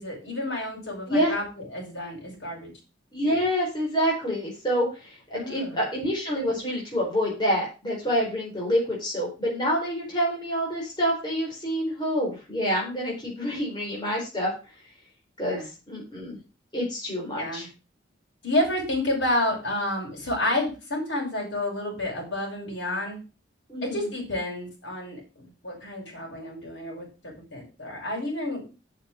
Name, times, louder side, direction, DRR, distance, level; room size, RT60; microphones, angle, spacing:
voice 1, 0.0-2.7 5.3-5.8 15.5-15.7 17.4-17.7 18.4-23.2 23.8-28.7, left 1 dB, 75° left, -1 dB, 5.6 m, -30 dB
voice 2, 3.1-4.9 5.3-14.5 15.4-15.6 15.9-16.4 16.7-17.6 23.7-24.0, equal, 25° left, -3 dB, 4.2 m, -27 dB
7.9 x 6.7 x 6.3 m, 0.31 s
head